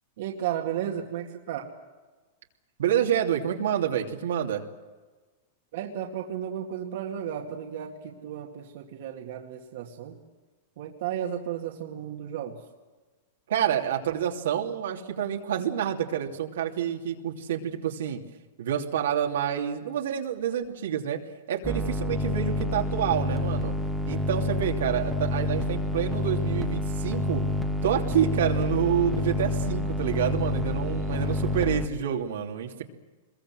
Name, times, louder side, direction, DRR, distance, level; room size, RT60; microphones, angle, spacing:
voice 1, 0.2-1.7 5.7-10.2 10.8-12.6, right 10 dB, 65° right, 1 dB, 2.3 m, -34 dB
voice 2, 2.8-4.6 13.5-18.2 18.6-21.2 21.5-23.7 24.1-27.4 27.8-32.8, right 9 dB, 85° right, 1 dB, 2.9 m, -28 dB
sound 1, 21.6-31.9, left 1 dB, ahead, 1.6 m, -28 dB
24.5 x 22.0 x 7.8 m, 1.3 s
supercardioid pair, 140°, 0 cm